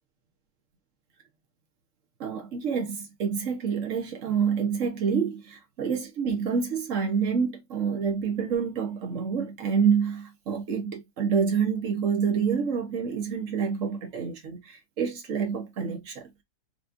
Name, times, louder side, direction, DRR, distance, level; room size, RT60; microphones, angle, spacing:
voice 1, 2.2-16.3, right 6 dB, 50° right, 1.3 m, -27 dB
5.0 x 3.1 x 2.5 m
omnidirectional pair, 1.8 m